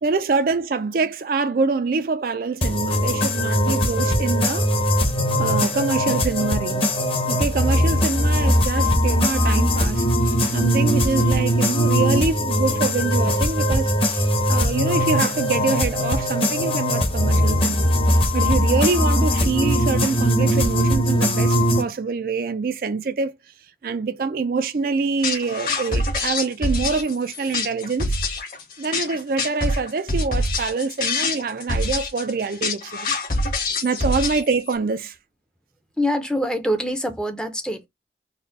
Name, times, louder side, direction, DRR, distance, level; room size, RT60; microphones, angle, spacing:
voice 1, 0.0-4.7 5.4-6.9 7.3-17.9 18.3-23.3 23.8-28.2 28.8-33.1 33.8-35.2, right 4 dB, 55° right, 0.4 m, -25 dB
sound 1, 2.6-21.8, equal, 30° left, 1.0 m, -20 dB
sound 2, 25.2-34.7, left 2 dB, 55° left, 1.7 m, -25 dB
voice 2, 36.0-37.9, equal, 5° left, 0.6 m, -25 dB
4.1 x 2.2 x 3.9 m
head